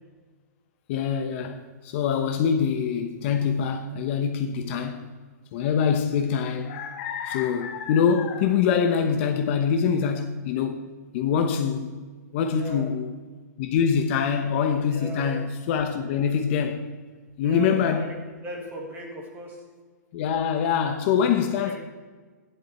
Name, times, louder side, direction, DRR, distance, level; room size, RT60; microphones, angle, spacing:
voice 1, 0.9-5.1 5.5-10.9 11.1-11.9 12.3-13.2 13.6-16.9 17.4-18.2 20.1-21.8, left 7 dB, 40° left, 0.9 m, -24 dB
voice 2, 12.5-12.9 14.9-15.3 17.4-19.6 21.6-21.8, right 1 dB, 20° right, 2.8 m, -38 dB
12.0 x 10.5 x 4.3 m
hypercardioid pair, 150°, 10 cm